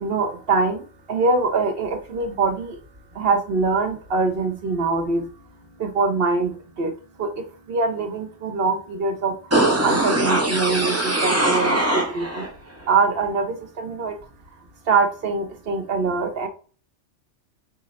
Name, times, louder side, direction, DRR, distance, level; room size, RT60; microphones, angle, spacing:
voice 1, 0.0-0.8 1.1-2.8 3.2-5.3 5.8-6.5 6.8-6.9 7.2-7.3 7.7-9.4 9.8-12.4 12.9-14.2 14.9-16.5, right 4 dB, 55° right, 5 dB, 0.9 m, -23 dB
sound 1, 9.5-12.5 12.8-12.9, right 1 dB, 15° right, 0.7 m, -21 dB
4.8 x 2.2 x 3.9 m, 0.37 s
omnidirectional pair, 1.3 m